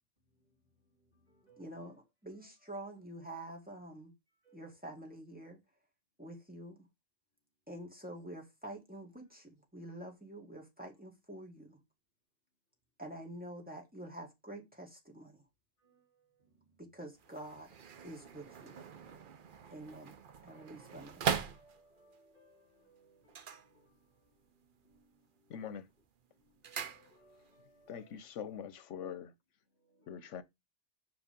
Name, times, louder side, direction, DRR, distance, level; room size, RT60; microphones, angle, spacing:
voice 1, 0.4-1.9 2.3-2.9 4.4-4.8 9.9-10.0 15.8-16.9 20.5-20.7 21.5-25.8 26.4-28.1 28.4-28.6 29.7-30.3, right 2 dB, 35° right, 3.8 m, -67 dB
voice 2, 1.6-4.1 4.5-5.6 6.2-6.8 7.7-11.8 13.0-15.4 16.8-17.7 18.0-18.8 19.7-20.1 20.4-21.2, right 1 dB, 5° right, 1.9 m, -47 dB
sound 1, 17.2-22.2 23.2-24.4 24.6-25.2 25.5-27.6 27.9-28.0, right 7 dB, 50° right, 0.8 m, -41 dB
voice 3, 25.5-25.9 27.9-29.3 30.1-30.4, left 8 dB, 80° left, 1.1 m, -43 dB
5.7 x 5.0 x 5.1 m
omnidirectional pair, 1.2 m